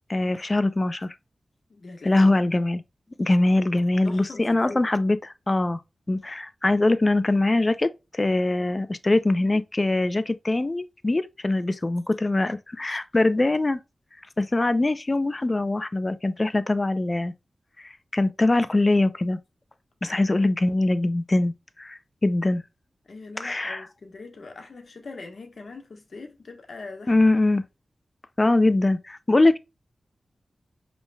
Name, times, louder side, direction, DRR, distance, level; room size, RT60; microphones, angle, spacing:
voice 1, 0.1-1.1 2.0-2.8 3.2-5.8 6.1-13.8 14.4-17.3 17.8-19.4 20.0-22.6 23.4-23.9 27.1-27.6 28.4-29.6, left 2 dB, 35° left, 0.6 m, -22 dB
voice 2, 1.7-2.3 4.0-4.8 20.0-20.3 23.1-27.1, left 3 dB, 70° left, 1.2 m, -41 dB
5.2 x 3.2 x 2.3 m
cardioid pair, 50°, 0 cm